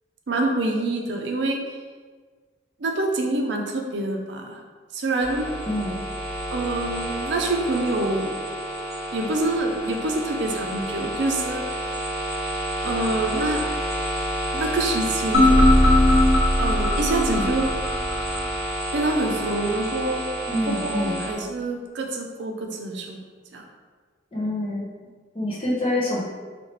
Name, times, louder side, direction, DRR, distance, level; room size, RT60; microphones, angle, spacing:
voice 1, 0.3-1.8 2.8-4.6 4.9-5.5 6.5-8.3 9.1-11.8 12.8-13.6 14.5-15.7 16.6-17.7 18.9-20.2 20.7-23.2 23.5-23.6, right 2 dB, 75° right, 2 dB, 0.5 m, -26 dB
sound 1, 5.2-21.3, right 1 dB, 15° right, 0.9 m, -30 dB
voice 2, 5.7-6.0 20.4-21.2 24.3-24.9 25.3-26.2, left 1 dB, 30° left, -6 dB, 0.9 m, -26 dB
sound 2, 15.3-18.4, left 1 dB, 65° left, 0.8 m, -18 dB
4.2 x 2.8 x 3.0 m, 1.5 s
head